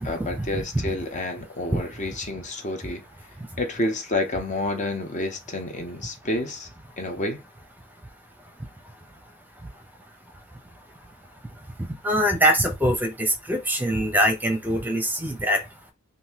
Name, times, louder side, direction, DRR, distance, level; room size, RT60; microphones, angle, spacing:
voice 1, 0.0-3.0 3.6-6.7 7.0-7.4, left 2 dB, 35° left, 0.6 m, -29 dB
voice 2, 12.0-15.6, equal, 10° right, 0.7 m, -23 dB
3.7 x 2.6 x 2.8 m
head